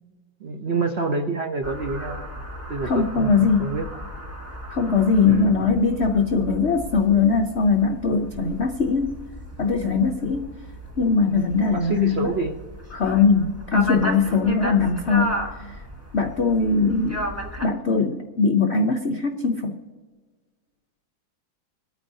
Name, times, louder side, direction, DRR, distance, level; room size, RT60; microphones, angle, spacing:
voice 1, 0.4-2.3 2.7-3.9 5.3-5.5 11.7-12.6, right 4 dB, 85° right, 4 dB, 0.5 m, -27 dB
sound 1, 1.6-17.6, equal, 10° right, 0.9 m, -35 dB
voice 2, 2.8-3.7 4.7-9.2 9.6-10.5 11.0-12.3 12.9-15.4 16.1-17.3 17.6-19.7, left 5 dB, 80° left, 4 dB, 0.6 m, -21 dB
26.0 x 9.2 x 2.7 m, 1.5 s
omnidirectional pair, 2.1 m